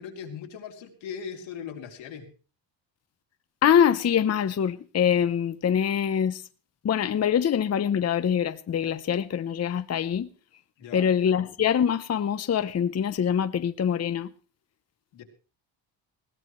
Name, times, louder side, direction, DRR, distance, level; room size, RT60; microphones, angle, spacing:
voice 1, 0.0-2.3 10.8-11.1 15.1-15.2, left 7 dB, 85° left, 3.2 m, -39 dB
voice 2, 3.6-6.4 6.8-10.3 10.9-14.3, left 8 dB, 35° left, 0.7 m, -24 dB
20.5 x 16.5 x 3.1 m
cardioid pair, 105°, 44 cm